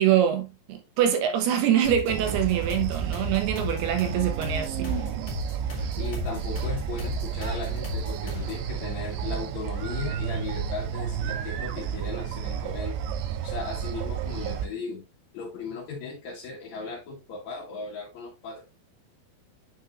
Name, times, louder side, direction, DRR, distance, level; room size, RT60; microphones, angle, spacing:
voice 1, 0.0-5.0, right 10 dB, 75° right, 3.0 m, -24 dB
sound 1, 1.8-8.7, left 5 dB, 80° left, 0.6 m, -37 dB
sound 2, 2.1-14.7, right 8 dB, 90° right, 3.0 m, -31 dB
voice 2, 6.0-13.0 13.4-15.0 15.3-18.6, left 4 dB, 55° left, 2.1 m, -37 dB
8.7 x 5.4 x 2.5 m
omnidirectional pair, 4.9 m